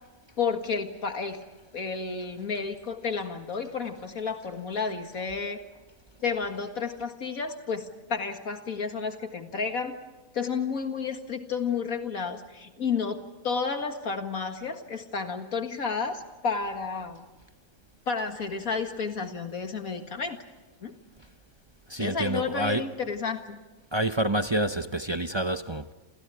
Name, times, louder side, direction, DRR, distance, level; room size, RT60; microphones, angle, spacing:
voice 1, 0.4-1.4 1.7-5.6 6.2-9.9 10.3-17.2 18.1-20.4 20.8-20.9 22.0-23.6, left 5 dB, 70° left, 2.2 m, -31 dB
voice 2, 21.9-22.9 23.9-25.9, right 1 dB, 25° right, 0.6 m, -28 dB
29.0 x 28.5 x 4.9 m
omnidirectional pair, 1.5 m